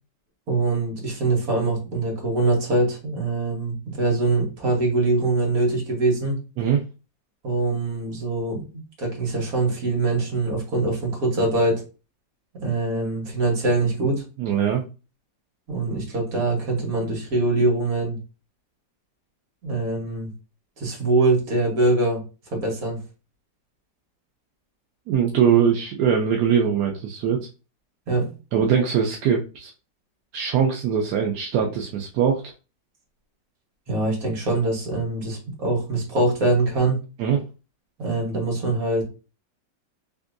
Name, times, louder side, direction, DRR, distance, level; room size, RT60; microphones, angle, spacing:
voice 1, 0.5-6.4 7.4-8.6 9.0-11.8 12.6-14.2 15.7-18.2 19.6-20.3 20.8-22.2 22.5-23.0 28.1-28.3 33.9-37.0 38.0-39.0, right 2 dB, 50° right, -1 dB, 1.7 m, -23 dB
voice 2, 14.4-14.8 25.1-27.4 28.5-29.7 30.3-32.4 37.2-37.4, right 7 dB, 70° right, 1 dB, 1.0 m, -21 dB
3.5 x 2.9 x 2.5 m, 0.32 s
omnidirectional pair, 2.0 m